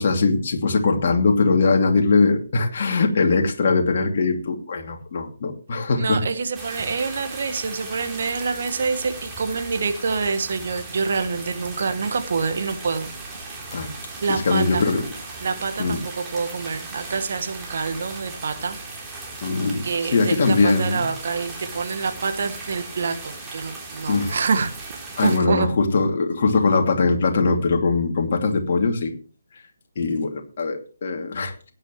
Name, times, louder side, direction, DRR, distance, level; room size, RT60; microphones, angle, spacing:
voice 1, 0.0-6.2 13.7-13.9 14.3-15.1 15.8-16.0 19.4-21.1 24.1-24.4 25.2-29.1 30.0-31.5, left 3 dB, 45° left, 3 dB, 2.7 m, -21 dB
voice 2, 6.0-13.1 14.2-14.8 15.4-18.8 19.8-24.7 25.2-25.7, right 4 dB, 50° right, 8 dB, 1.7 m, -26 dB
sound 1, 6.5-25.4, right 3 dB, 15° right, 3.7 m, -37 dB
18.0 x 9.6 x 3.2 m, 0.36 s
figure-of-eight pair, 145°, 0 cm